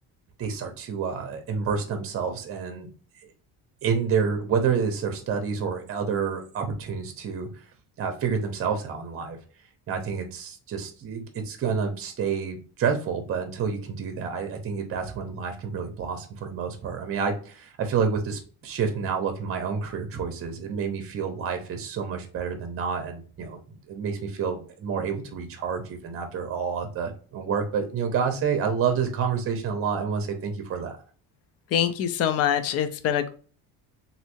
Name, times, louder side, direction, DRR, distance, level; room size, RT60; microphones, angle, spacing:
voice 1, 0.4-2.9 3.8-7.5 8.0-9.4 9.9-31.0, right 6 dB, 35° right, 5 dB, 0.8 m, -29 dB
voice 2, 31.7-33.3, left 9 dB, 40° left, 10 dB, 0.4 m, -24 dB
3.2 x 2.7 x 2.9 m, 0.41 s
cardioid pair, 140°, 39 cm